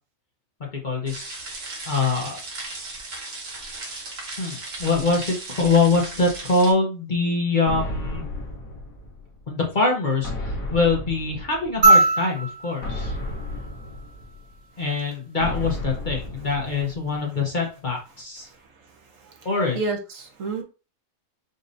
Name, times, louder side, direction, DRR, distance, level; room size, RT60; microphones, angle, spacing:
voice 1, 0.8-1.3 1.8-2.3 4.4-8.2 9.5-13.2 14.8-18.5 19.4-19.8, left 3 dB, 40° left, 0 dB, 1.1 m, -24 dB
sound 1, 1.1-6.7, right 2 dB, 50° right, 1.2 m, -36 dB
sound 2, 7.7-9.4 10.2-12.0 12.8-14.6 15.4-17.2, left 1 dB, 85° left, 1.5 m, -33 dB
sound 3, 11.8-14.4 16.0-16.1, right 2 dB, 90° right, 1.9 m, -21 dB
voice 2, 19.7-20.6, right 3 dB, 70° right, 3 dB, 1.3 m, -29 dB
5.2 x 2.9 x 2.6 m, 0.33 s
omnidirectional pair, 1.4 m